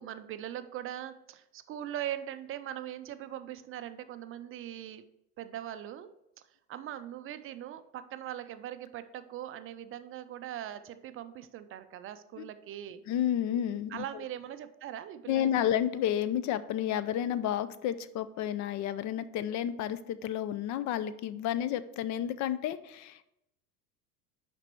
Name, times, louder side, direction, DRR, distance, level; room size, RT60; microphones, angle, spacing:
voice 1, 0.0-5.0 5.4-6.1 6.4-13.0 13.9-15.7, right 11 dB, 30° right, 11 dB, 0.4 m, -41 dB
voice 2, 13.1-14.0 15.3-23.3, left 10 dB, 40° left, 15 dB, 0.5 m, -31 dB
5.8 x 5.2 x 4.5 m, 0.84 s
hypercardioid pair, 80°, 47 cm